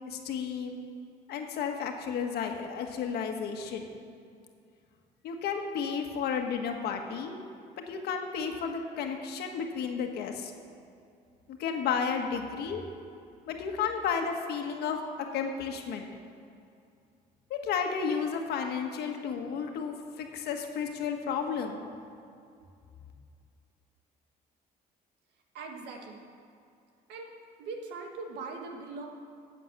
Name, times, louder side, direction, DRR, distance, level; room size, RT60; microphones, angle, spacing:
voice 1, 0.1-0.8 1.3-3.9 5.2-7.4 7.9-10.5 11.6-12.8 13.5-15.0 15.3-16.1 17.5-21.8, left 6 dB, 75° left, 4 dB, 1.5 m, -32 dB
voice 2, 25.5-26.2 27.1-27.3 27.6-29.1, right 4 dB, 90° right, 2 dB, 1.8 m, -40 dB
11.0 x 8.3 x 7.3 m, 2.4 s
cardioid pair, 110°, 17 cm